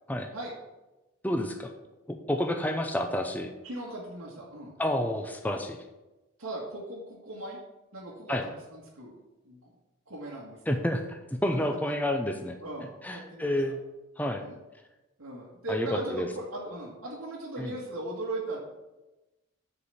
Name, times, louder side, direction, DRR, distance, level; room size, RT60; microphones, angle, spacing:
voice 1, 1.2-1.7 2.3-3.5 4.8-5.8 8.3-8.4 10.7-12.6 13.0-13.8 14.2-14.4 15.7-16.3 17.6-17.7, left 1 dB, 5° left, 5 dB, 0.5 m, -29 dB
voice 2, 3.6-4.7 6.4-7.6 7.9-9.1 9.4-9.7 10.1-10.9 11.5-11.7 12.6-13.6 14.4-14.6 15.2-18.6, right 2 dB, 90° right, -5 dB, 1.7 m, -38 dB
6.9 x 4.8 x 7.1 m, 1.0 s
head